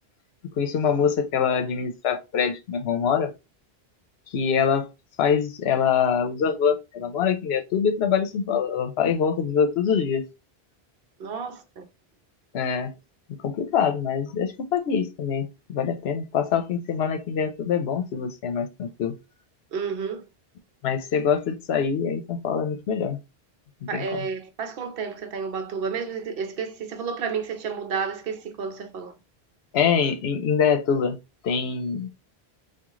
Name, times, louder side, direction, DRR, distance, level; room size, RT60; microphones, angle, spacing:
voice 1, 0.6-3.3 4.3-4.9 5.2-10.2 12.5-12.9 13.4-19.2 20.8-23.2 23.8-24.3 29.7-31.2 31.4-32.1, left 7 dB, 75° left, 0.9 m, -24 dB
voice 2, 11.2-11.8 19.7-20.2 23.9-29.1, right 6 dB, 65° right, 0.8 m, -31 dB
3.6 x 2.3 x 3.0 m
omnidirectional pair, 1.1 m